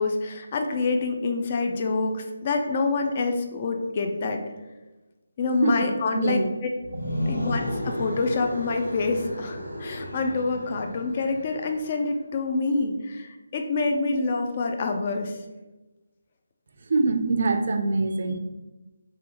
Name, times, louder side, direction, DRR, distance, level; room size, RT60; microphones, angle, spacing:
voice 1, 0.0-4.4 5.4-6.4 7.3-15.4, left 3 dB, 35° left, 4 dB, 0.3 m, -26 dB
voice 2, 6.1-6.5 16.8-18.4, right 3 dB, 55° right, 6 dB, 0.3 m, -24 dB
sound 1, 6.8-11.8, equal, 80° left, 0.8 m, -33 dB
2.8 x 2.2 x 3.4 m, 1.1 s
figure-of-eight pair, 160°, 0 cm